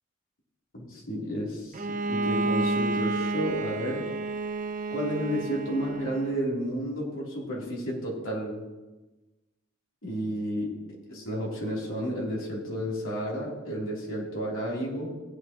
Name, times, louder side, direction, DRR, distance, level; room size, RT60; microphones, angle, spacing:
voice 1, 0.7-4.0 4.9-8.6 10.0-10.7 11.1-15.1, equal, 75° left, -4 dB, 3.3 m, -31 dB
Bowed string instrument, 1.7-6.4, right 2 dB, 40° right, 0.4 m, -30 dB
16.5 x 8.9 x 3.0 m, 1.2 s
head